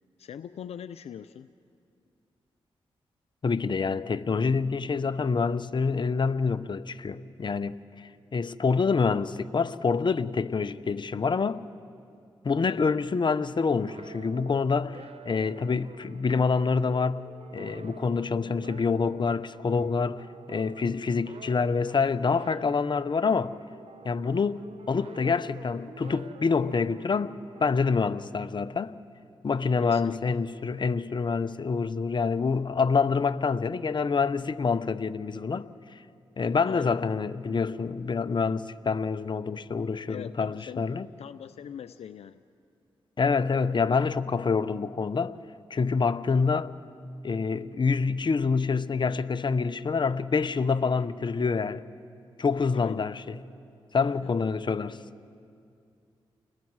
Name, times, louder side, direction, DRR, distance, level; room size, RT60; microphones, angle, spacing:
voice 1, 0.2-1.5 12.6-12.9 29.8-30.4 36.6-37.0 40.1-40.9 41.2-42.4 43.8-43.9 52.7-53.1 54.0-54.3, left 8 dB, 75° left, 0.5 m, -42 dB
voice 2, 3.4-11.6 12.4-23.5 24.0-28.9 29.4-35.7 36.4-41.1 43.2-45.3 45.7-46.7 47.2-51.8 52.4-53.4 53.9-55.0, left 5 dB, 45° left, 0.8 m, -27 dB
sound 1, 13.6-28.9, right 6 dB, 65° right, 1.0 m, -49 dB
29.5 x 21.0 x 4.8 m
supercardioid pair, 45°, 11 cm